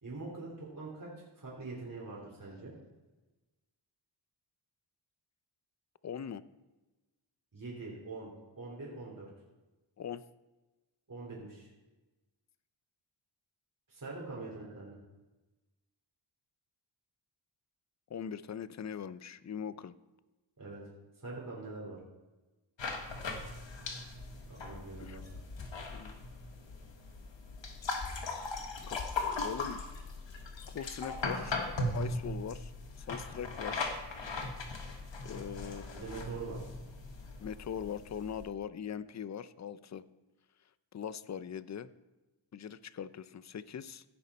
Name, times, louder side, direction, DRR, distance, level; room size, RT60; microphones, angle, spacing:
voice 1, 0.0-2.7 7.5-9.3 11.1-11.7 13.9-15.0 20.6-20.8 21.2-22.0 24.5-25.3 35.9-36.6, right 3 dB, 40° right, -4 dB, 3.1 m, -44 dB
voice 2, 6.0-6.4 10.0-10.2 18.1-19.9 25.0-25.2 25.9-26.2 28.6-29.0 29.4-29.8 30.7-31.6 31.9-32.7 33.0-33.9 35.2-36.2 37.4-40.0 40.9-41.9 42.5-44.0, left 8 dB, 35° left, 15 dB, 0.5 m, -41 dB
sound 1, 22.8-38.5, left 2 dB, 65° left, 1.4 m, -39 dB
15.5 x 5.5 x 4.2 m, 1.1 s
cardioid pair, 50°, 49 cm